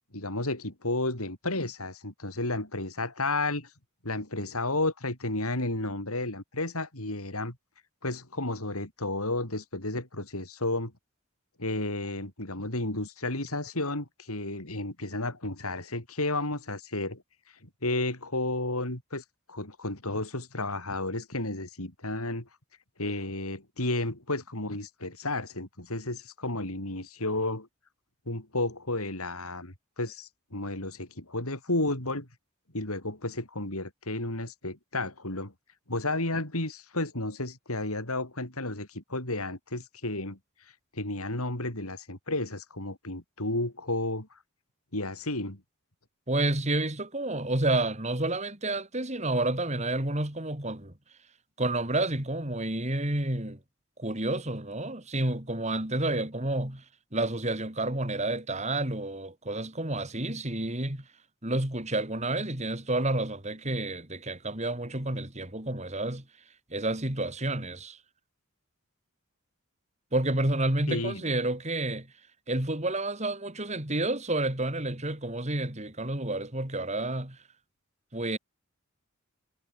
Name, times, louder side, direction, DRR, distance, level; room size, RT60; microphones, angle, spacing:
voice 1, 0.1-3.7 4.0-7.6 8.0-10.9 11.6-17.2 17.8-22.5 23.0-27.7 28.3-32.3 32.7-35.5 35.9-40.4 40.9-44.3 44.9-45.6 70.9-71.2, left 2 dB, 85° left, 7.0 m, -32 dB
voice 2, 46.3-50.9 51.6-53.6 54.0-56.8 57.1-61.1 61.4-66.2 66.7-68.0 70.1-72.1 72.5-77.4 78.1-78.4, right 2 dB, 30° right, 3.4 m, -30 dB
head